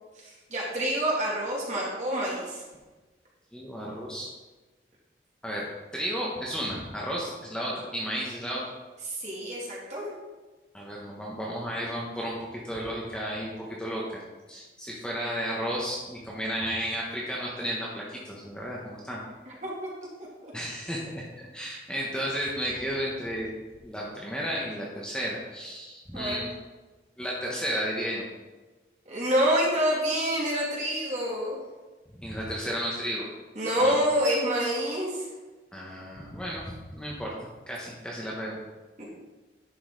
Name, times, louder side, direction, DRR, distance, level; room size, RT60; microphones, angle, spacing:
voice 1, 0.2-2.6 9.1-10.1 19.5-19.9 20.4-20.5 26.1-26.4 29.1-31.6 33.6-35.3 39.0-39.1, equal, 40° right, -5 dB, 2.4 m, -27 dB
voice 2, 3.5-4.3 5.4-5.7 5.9-8.6 10.7-13.5 13.8-14.2 14.5-19.2 20.5-26.5 27.2-28.2 32.1-33.3 33.8-34.0 35.7-37.3 37.7-38.6, equal, 5° left, -4 dB, 1.1 m, -33 dB
10.5 x 5.5 x 3.9 m, 1.2 s
head